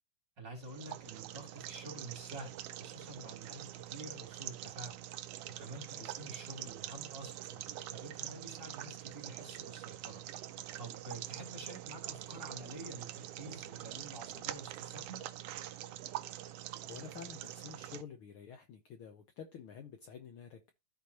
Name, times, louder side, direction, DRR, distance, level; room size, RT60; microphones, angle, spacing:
voice 1, 0.4-5.0 5.6-10.2 10.8-15.3, right 2 dB, 35° right, 3.6 m, -48 dB
sound 1, 0.6-18.0, right 13 dB, 80° right, 1.4 m, -45 dB
voice 2, 16.9-20.7, left 7 dB, 80° left, 1.2 m, -49 dB
14.0 x 4.7 x 2.9 m
omnidirectional pair, 3.5 m